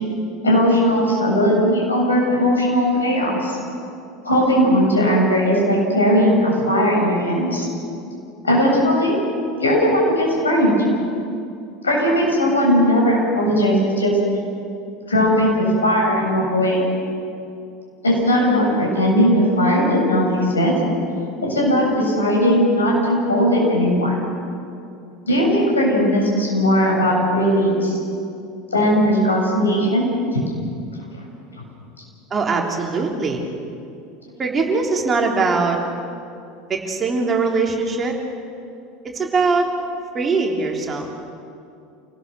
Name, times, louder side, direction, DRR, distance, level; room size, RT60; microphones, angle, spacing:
voice 1, 0.4-3.6 4.2-7.7 8.4-9.2 9.6-10.8 11.8-14.2 15.1-16.8 18.0-20.7 21.4-24.1 25.3-28.0 28.7-30.0, equal, 80° left, -2 dB, 7.6 m, -18 dB
voice 2, 32.3-33.4 34.4-35.8 36.7-38.2 39.1-39.7 40.1-41.1, right 4 dB, 25° right, 0 dB, 3.7 m, -21 dB
28.0 x 18.5 x 6.9 m, 2.6 s
figure-of-eight pair, 75°, 0 cm